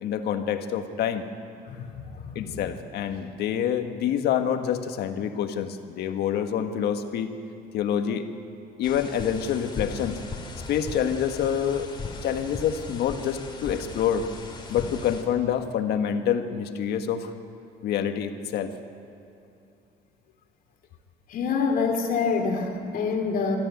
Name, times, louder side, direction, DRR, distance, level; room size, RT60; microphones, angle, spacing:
voice 1, 0.0-1.3 2.3-7.4 7.7-8.3 8.8-10.2 10.7-11.9 12.2-14.3 14.7-17.3 17.8-18.7, left 9 dB, 75° left, 7 dB, 1.5 m, -27 dB
voice 2, 1.7-2.5 21.3-23.6, left 5 dB, 55° left, 3 dB, 2.5 m, -26 dB
sound 1, 8.8-15.2, left 3 dB, 30° left, 3.2 m, -38 dB
23.5 x 14.0 x 9.3 m, 2.6 s
cardioid pair, 110°, 17 cm